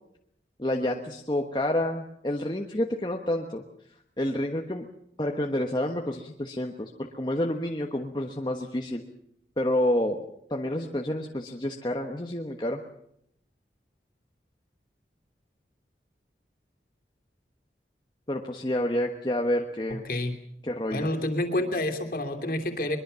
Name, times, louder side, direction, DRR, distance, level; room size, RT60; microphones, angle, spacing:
voice 1, 0.6-3.6 4.2-4.9 5.2-9.0 9.6-10.2 10.5-12.8 18.3-20.0 20.6-21.1, left 1 dB, 25° left, 2 dB, 1.2 m, -29 dB
voice 2, 20.9-23.0, left 1 dB, 50° left, 5 dB, 3.0 m, -28 dB
22.5 x 22.5 x 7.0 m, 0.73 s
head